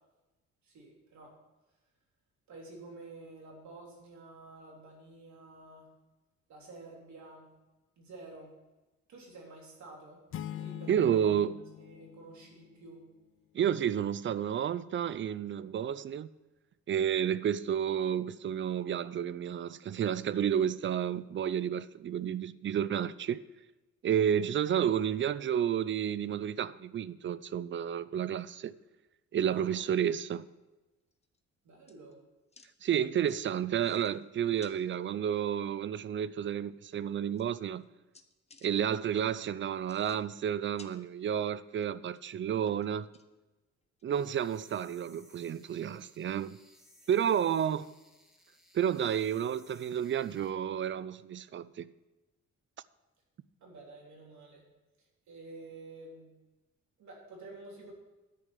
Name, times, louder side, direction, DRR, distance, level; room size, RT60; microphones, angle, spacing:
voice 1, 0.6-1.3 2.5-5.9 6.5-7.5 8.0-8.5 9.1-10.2 10.5-11.4 11.8-13.1 29.4-29.8 31.6-32.2 42.5-42.7 47.0-47.1 47.4-47.5 53.6-54.6 55.3-56.4 57.0-57.9, right 2 dB, 70° right, 3.4 m, -50 dB
sound 1, 10.3-13.1, left 11 dB, 45° left, 0.5 m, -44 dB
voice 2, 10.9-11.5 13.5-16.3 16.9-23.4 24.0-28.7 29.3-30.4 32.8-37.8 38.6-43.1 44.0-46.6 47.1-47.8 48.7-51.9, right 9 dB, 40° right, 0.4 m, -31 dB
sound 2, 31.1-31.4 31.9-32.1 32.5-32.7 33.2-33.4 33.8-34.2 34.6-35.0 36.3-36.4 36.9-37.0 37.4-37.9 38.1-38.7 39.8-40.5 40.8-41.5 41.8-42.3 42.8-43.4 44.0-44.1 44.4-44.5 44.9-45.0 45.4-45.5 47.5-47.6, left 4 dB, 20° left, 0.8 m, -59 dB
sound 3, 44.1-50.5, equal, ahead, 1.8 m, -62 dB
10.0 x 5.2 x 8.2 m
cardioid pair, 90°, 30 cm